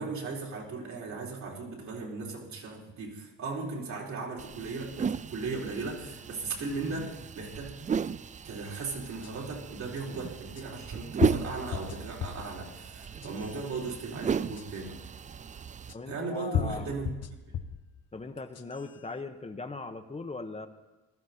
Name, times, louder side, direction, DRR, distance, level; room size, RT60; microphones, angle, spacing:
voice 1, 0.0-7.8 8.4-15.1 16.1-17.1 17.5-17.6, right 3 dB, 70° right, -2 dB, 4.2 m, -37 dB
sound 1, 4.4-15.9, right 7 dB, 25° right, 0.4 m, -35 dB
sound 2, 9.2-9.3 10.5-10.6 11.2-12.5 13.0-13.6 14.6-14.7 15.9-16.0 16.5-17.8 18.4-18.9, left 8 dB, 55° left, 1.1 m, -33 dB
voice 2, 15.9-17.0 18.1-20.7, left 3 dB, 20° left, 7 dB, 1.0 m, -39 dB
19.0 x 13.5 x 4.3 m, 1.1 s
cardioid pair, 90°, 30 cm